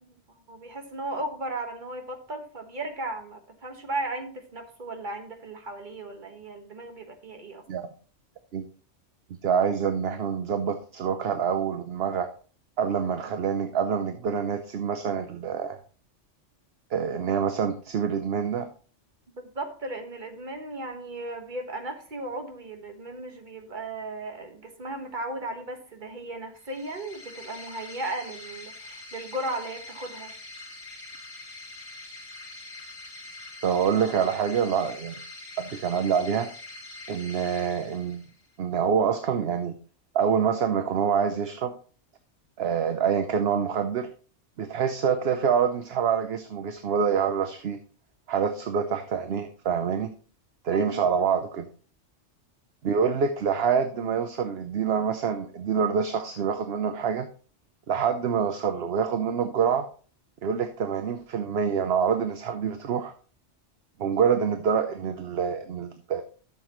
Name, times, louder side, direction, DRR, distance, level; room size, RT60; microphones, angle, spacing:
voice 1, 0.0-7.6 19.5-30.3 50.7-51.0, right 2 dB, 40° right, 4 dB, 1.6 m, -36 dB
voice 2, 9.4-12.3 12.8-15.8 16.9-18.7 33.6-35.2 35.6-36.5 37.1-38.2 38.6-39.7 40.1-41.7 42.6-44.1 44.6-47.8 48.3-50.1 50.6-51.7 52.8-57.3 57.9-59.9 60.4-63.1 64.0-66.2, right 7 dB, 60° right, 8 dB, 1.0 m, -26 dB
sound 1, 26.6-38.5, left 2 dB, 60° left, 2.2 m, -44 dB
12.0 x 6.9 x 3.0 m, 0.41 s
omnidirectional pair, 1.2 m